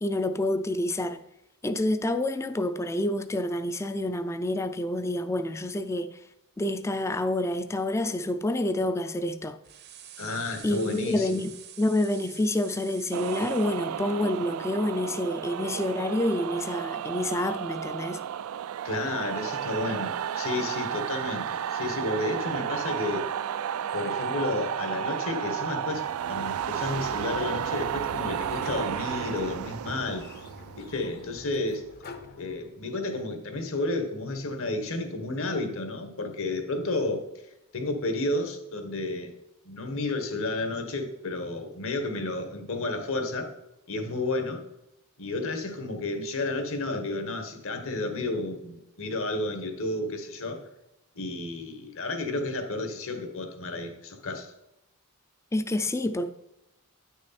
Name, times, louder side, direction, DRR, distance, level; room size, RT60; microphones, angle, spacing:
voice 1, 0.0-1.2 1.6-6.2 6.6-9.6 10.6-11.5 11.8-18.2 55.5-56.3, left 1 dB, 15° left, 0.4 m, -28 dB
sound 1, 9.6-13.8, right 10 dB, 50° right, 0.7 m, -47 dB
voice 2, 10.2-11.5 18.8-23.3 23.9-30.3 30.8-31.9 32.3-37.3 37.7-39.3 39.6-43.5 43.9-44.6 45.2-50.7 51.1-54.5, left 2 dB, 65° left, 1.4 m, -31 dB
sound 2, 13.1-31.7, right 9 dB, 70° right, 0.3 m, -32 dB
Sliding door, 28.4-33.1, left 3 dB, 45° left, 0.8 m, -47 dB
9.3 x 6.4 x 4.2 m
head